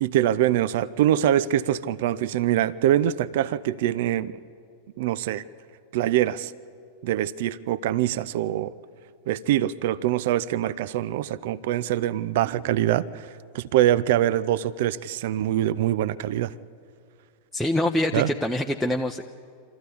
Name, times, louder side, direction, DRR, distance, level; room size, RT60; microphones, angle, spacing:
voice 1, 0.0-4.4 5.0-5.4 5.9-6.5 7.0-8.7 9.3-13.3 13.5-16.5 18.1-18.3, right 12 dB, 55° right, 19 dB, 0.5 m, -24 dB
voice 2, 17.5-19.2, left 1 dB, ahead, 1 dB, 0.7 m, -25 dB
26.0 x 14.5 x 8.4 m, 2.4 s
figure-of-eight pair, 90°, 0 cm